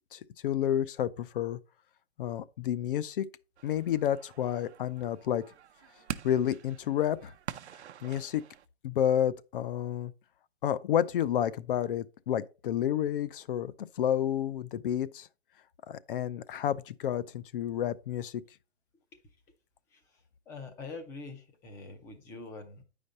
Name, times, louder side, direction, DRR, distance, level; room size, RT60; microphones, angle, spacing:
voice 1, 0.1-1.6 2.2-3.3 3.6-5.4 6.2-7.3 8.0-8.4 8.8-10.1 10.6-15.3 15.9-18.4, left 10 dB, 55° left, 0.6 m, -30 dB
sound 1, 3.6-8.7, right 9 dB, 90° right, 0.7 m, -45 dB
voice 2, 20.5-22.8, left 3 dB, 10° left, 0.4 m, -44 dB
9.0 x 5.2 x 4.0 m
hypercardioid pair, 160°, 33 cm